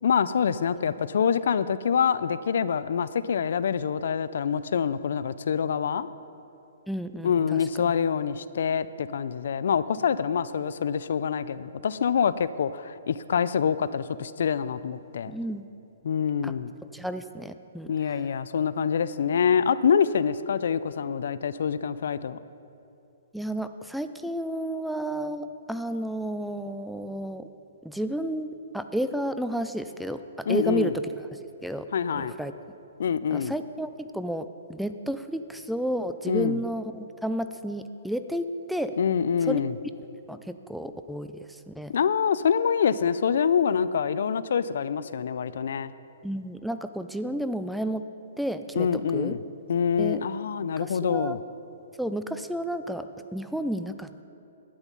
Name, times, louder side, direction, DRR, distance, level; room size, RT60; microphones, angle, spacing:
voice 1, 0.0-6.1 7.2-15.3 16.0-16.7 17.9-22.4 30.5-30.9 31.9-32.3 33.0-33.5 36.3-36.6 39.0-39.7 41.9-45.9 48.8-49.4 49.7-51.4, left 7 dB, 65° left, 16 dB, 0.4 m, -26 dB
voice 2, 6.9-7.9 15.3-15.6 16.4-16.5 16.9-17.9 23.3-27.5 27.8-31.9 32.1-32.5 33.3-38.9 39.5-39.6 40.3-41.9 46.2-48.1 48.4-49.4 50.0-50.2 50.8-51.4 52.0-54.2, right 1 dB, ahead, 9 dB, 0.4 m, -32 dB
12.0 x 9.1 x 5.4 m, 2.8 s
hypercardioid pair, 130°, 0 cm